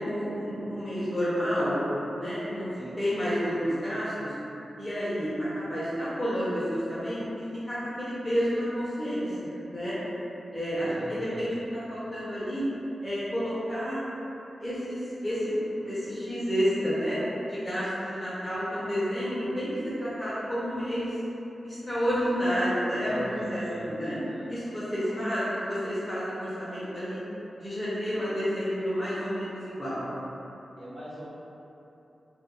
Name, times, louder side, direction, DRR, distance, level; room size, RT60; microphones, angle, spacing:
voice 1, 0.0-1.8 2.2-2.7 3.0-4.3 4.8-9.9 10.5-12.7 13.0-14.0 14.6-17.2 17.5-21.1 21.6-24.2 24.5-27.2 27.6-30.1, equal, 15° left, -11 dB, 0.6 m, -30 dB
voice 2, 10.8-11.4 23.0-24.5 25.1-25.6 30.8-31.3, equal, 30° right, -11 dB, 0.8 m, -39 dB
2.3 x 2.2 x 2.9 m, 2.9 s
wide cardioid pair, 125°, 0 cm